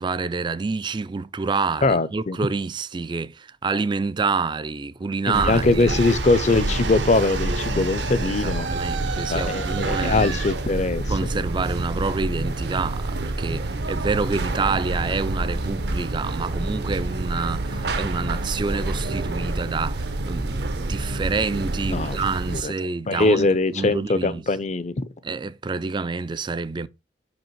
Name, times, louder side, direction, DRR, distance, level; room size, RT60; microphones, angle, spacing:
voice 1, 0.0-6.0 8.2-10.4 11.1-24.4 25.2-26.9, right 4 dB, 25° right, 0.3 m, -28 dB
voice 2, 1.8-2.4 5.3-8.7 9.2-11.0 21.9-22.2 22.5-22.7 23.1-25.0, left 3 dB, 40° left, 0.6 m, -22 dB
sound 1, 5.3-22.6, right 2 dB, 60° right, 0.8 m, -28 dB
sound 2, 5.8-12.0, right 5 dB, 80° right, 1.0 m, -33 dB
5.7 x 5.2 x 4.6 m
head